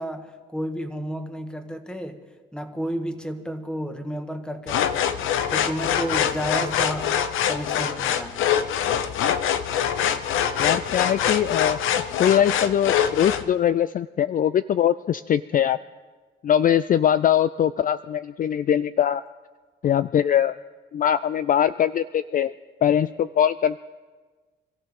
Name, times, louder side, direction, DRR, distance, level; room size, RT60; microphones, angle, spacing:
voice 1, 0.0-8.4, equal, 5° left, 6 dB, 1.7 m, -32 dB
sound 1, 4.7-13.4, left 9 dB, 85° left, 0.8 m, -24 dB
voice 2, 10.6-11.8 12.2-15.8 16.4-19.2 19.8-20.6 20.9-22.5 22.8-23.8, left 9 dB, 45° left, 14 dB, 0.4 m, -21 dB
26.5 x 14.5 x 3.7 m, 1.4 s
cardioid pair, 90°, 20 cm